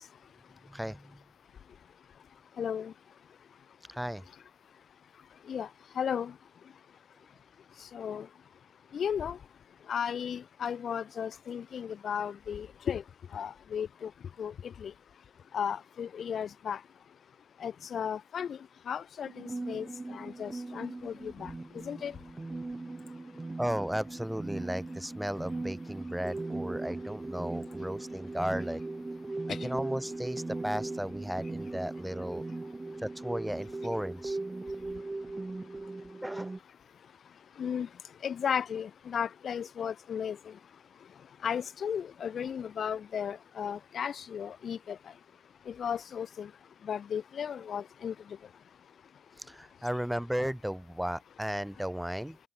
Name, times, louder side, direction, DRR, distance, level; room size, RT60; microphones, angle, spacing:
voice 1, 0.7-1.2 3.9-4.2 23.6-28.8 29.5-32.4 33.0-34.4 36.2-36.5 49.4-52.4, equal, 5° right, 1.6 m, -35 dB
voice 2, 2.6-2.9 5.5-5.7 6.0-6.3 7.9-8.3 8.9-9.4 9.9-13.0 13.3-14.1 14.4-14.5 14.8-14.9 15.5-16.8 17.6-18.6 18.9-19.9 20.1-21.5 21.9-22.1 29.5-29.6 37.6-37.9 38.2-40.4 41.4-45.0 45.7-46.5 46.9-48.1, left 8 dB, 55° left, 2.4 m, -34 dB
sound 1, 19.2-36.6, right 2 dB, 20° right, 1.9 m, -39 dB
cardioid pair, 90°, 0 cm